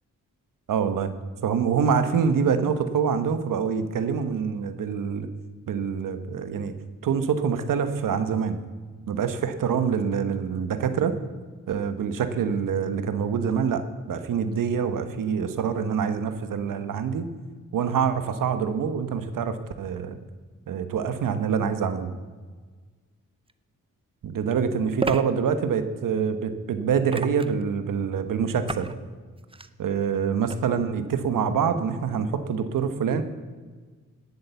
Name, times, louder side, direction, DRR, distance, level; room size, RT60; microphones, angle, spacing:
voice 1, 0.7-1.1 1.4-5.3 5.7-6.7 7.0-8.6 9.1-11.1 11.7-17.3 17.7-20.2 20.7-22.1 24.2-28.9 29.8-33.2, right 6 dB, 85° right, 9 dB, 1.1 m, -25 dB
sound 1, 23.5-23.6 25.0-25.2 27.1-27.6 28.7-28.9 29.4-29.7 30.5-30.6, right 3 dB, 15° right, 0.6 m, -31 dB
17.5 x 8.0 x 7.0 m, 1.5 s
cardioid pair, 70°, 32 cm